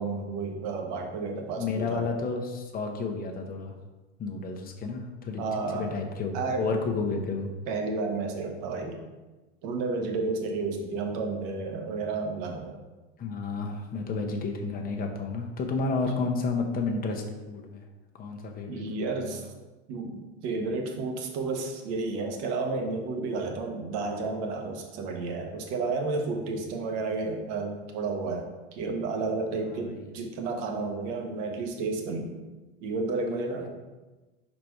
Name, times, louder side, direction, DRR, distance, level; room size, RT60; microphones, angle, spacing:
voice 1, 0.0-2.1 5.4-5.9 6.3-6.7 7.7-9.0 9.6-12.8 18.7-19.5 19.9-32.4 32.8-33.7, right 3 dB, 55° right, 2 dB, 1.3 m, -31 dB
voice 2, 1.6-3.7 4.2-5.4 5.7-7.5 13.2-17.8 18.1-18.8 19.3-19.4 29.5-30.1 33.3-33.7, left 4 dB, 25° left, 3 dB, 1.0 m, -31 dB
4.9 x 4.3 x 4.6 m, 1.1 s
hypercardioid pair, 110°, 33 cm